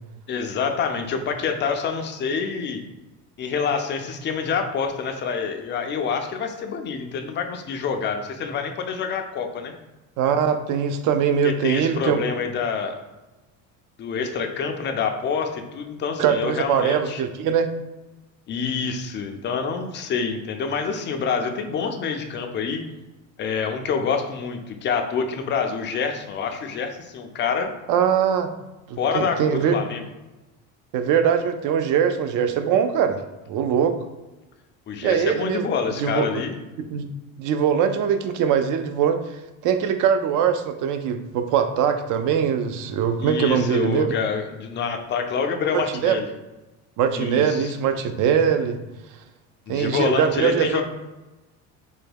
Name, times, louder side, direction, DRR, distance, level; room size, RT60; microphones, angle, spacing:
voice 1, 0.3-2.8 3.4-9.7 11.4-13.0 14.0-17.2 18.5-22.8 23.4-27.7 29.0-30.0 34.9-36.5 43.2-46.3 47.1-47.7 49.7-50.8, left 5 dB, 30° left, 5 dB, 0.4 m, -27 dB
voice 2, 10.2-12.2 16.2-17.7 27.9-28.5 28.9-29.7 30.9-33.2 33.5-34.0 35.0-35.7 36.0-36.4 36.9-37.1 37.4-39.2 39.6-44.1 45.7-46.2 47.0-48.8 49.7-50.8, right 8 dB, 50° right, 8 dB, 0.4 m, -22 dB
3.4 x 2.1 x 3.3 m, 1.1 s
supercardioid pair, 105°, 41 cm